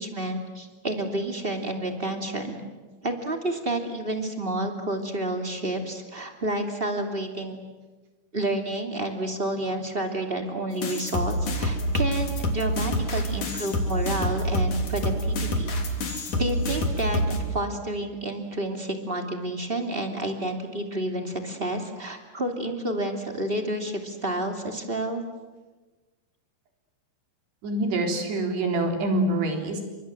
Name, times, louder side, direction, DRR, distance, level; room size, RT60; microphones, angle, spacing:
voice 1, 0.0-2.6 3.0-7.6 8.3-15.8 16.3-25.3, right 1 dB, 15° right, 4 dB, 2.2 m, -30 dB
sound 1, 10.8-17.4, equal, 50° left, 4.7 m, -27 dB
voice 2, 27.6-29.8, right 2 dB, 85° right, 3 dB, 5.9 m, -25 dB
30.0 x 26.0 x 7.7 m, 1.3 s
omnidirectional pair, 4.7 m